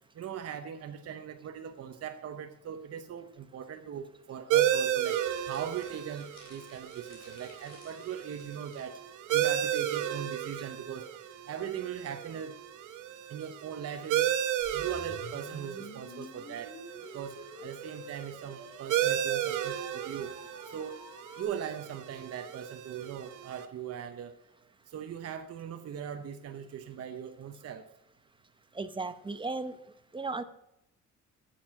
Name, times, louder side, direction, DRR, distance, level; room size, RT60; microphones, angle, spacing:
voice 1, 0.1-9.0 9.3-11.1 11.5-12.6 13.3-16.8 17.1-21.0 21.4-24.4 24.9-27.9, right 8 dB, 55° right, 7 dB, 0.8 m, -40 dB
sound 1, 4.5-23.6, right 11 dB, 90° right, 0.9 m, -34 dB
sound 2, 5.2-8.9, left 4 dB, 85° left, 3.6 m, -57 dB
sound 3, 14.6-21.4, left 2 dB, 60° left, 4.2 m, -50 dB
voice 2, 28.8-29.7 30.1-30.4, right 3 dB, 15° right, 10 dB, 0.8 m, -35 dB
10.0 x 7.6 x 6.1 m, 0.85 s
cardioid pair, 90°, 30 cm